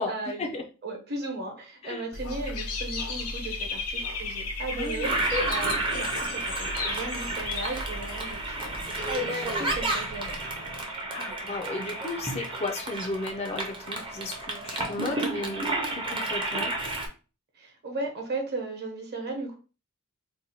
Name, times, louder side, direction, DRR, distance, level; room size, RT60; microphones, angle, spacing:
voice 1, 0.0-0.5 0.8-10.5 17.6-19.6, right 2 dB, 45° right, 2 dB, 1.0 m, -36 dB
Dog / Bird, 2.1-9.1, left 3 dB, 75° left, 0.6 m, -35 dB
voice 2, 4.7-5.2 11.1-16.7, left 3 dB, 30° left, 4 dB, 0.4 m, -34 dB
Toilet flush, 5.0-17.1, right 2 dB, 25° right, 0.6 m, -31 dB
2.7 x 2.2 x 4.1 m, 0.34 s
head